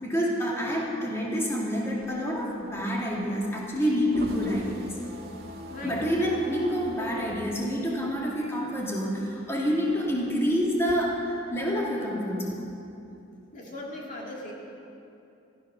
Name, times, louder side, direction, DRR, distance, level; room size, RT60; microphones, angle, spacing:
voice 1, 0.0-4.9 5.8-12.6, equal, 15° left, -3 dB, 2.2 m, -28 dB
sound 1, 1.7-8.8 9.2-10.9, right 1 dB, 50° right, 2.0 m, -44 dB
voice 2, 5.7-6.0 13.5-14.5, left 1 dB, 40° left, -2 dB, 1.9 m, -39 dB
15.0 x 13.0 x 6.2 m, 2.7 s
head